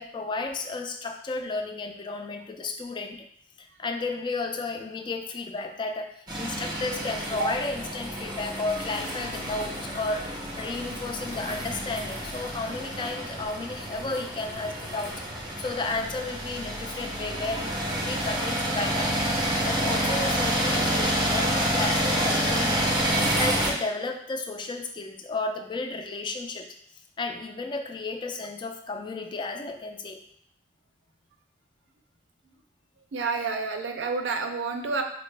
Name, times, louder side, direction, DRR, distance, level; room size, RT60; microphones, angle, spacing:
voice 1, 0.0-3.2 3.6-19.1 19.6-22.9 23.2-26.7 27.2-30.2, left 3 dB, 25° left, 4 dB, 0.3 m, -33 dB
sound 1, 6.3-23.7, equal, 25° right, 0.7 m, -28 dB
voice 2, 33.1-35.0, right 4 dB, 70° right, 5 dB, 0.4 m, -29 dB
4.0 x 2.0 x 3.2 m, 0.68 s
head